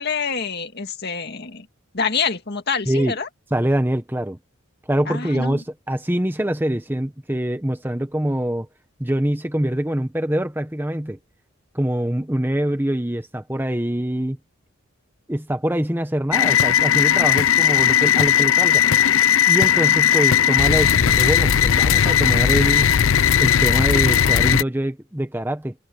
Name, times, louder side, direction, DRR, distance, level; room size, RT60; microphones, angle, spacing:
voice 1, 0.0-1.7 1.9-3.3 5.1-5.6, left 5 dB, 50° left, 2.1 m, -26 dB
voice 2, 3.5-4.4 4.9-8.7 9.0-11.2 11.7-14.4 15.3-18.8 19.4-22.9 23.4-25.7, right 1 dB, 10° right, 1.0 m, -24 dB
sound 1, 16.3-24.6, left 9 dB, 65° left, 0.5 m, -17 dB
head